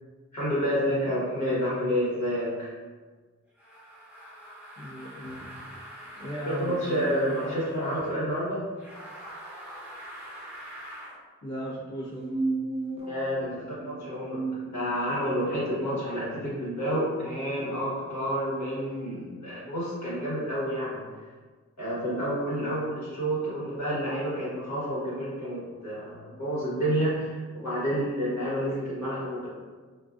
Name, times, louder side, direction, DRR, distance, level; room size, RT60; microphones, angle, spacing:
voice 1, 0.3-2.7 6.4-8.6 13.1-21.1 21.8-29.5, equal, 70° left, -9 dB, 1.2 m, -29 dB
sound 1, 3.6-8.2 8.7-11.2, right 1 dB, 5° right, 0.9 m, -44 dB
voice 2, 4.7-8.3 11.4-12.4, equal, 55° left, -12 dB, 0.8 m, -37 dB
sound 2, 12.0-15.5, right 3 dB, 20° right, 0.5 m, -34 dB
2.4 x 2.4 x 2.4 m, 1.4 s
wide cardioid pair, 85°, 29 cm